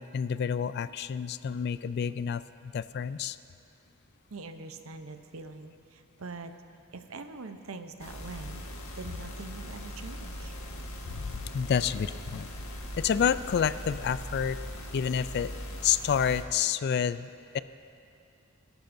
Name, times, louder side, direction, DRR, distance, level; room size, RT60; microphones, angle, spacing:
voice 1, 0.0-3.4 11.1-12.5 13.0-14.6 14.9-15.5 15.8-17.6, left 7 dB, 50° left, 15 dB, 0.3 m, -29 dB
voice 2, 4.3-6.5 6.9-8.7 9.0-10.6, right 3 dB, 70° right, 8 dB, 0.7 m, -43 dB
sound 1, 8.0-16.4, equal, 85° left, 1.5 m, -40 dB
23.0 x 11.5 x 2.6 m, 2.5 s
head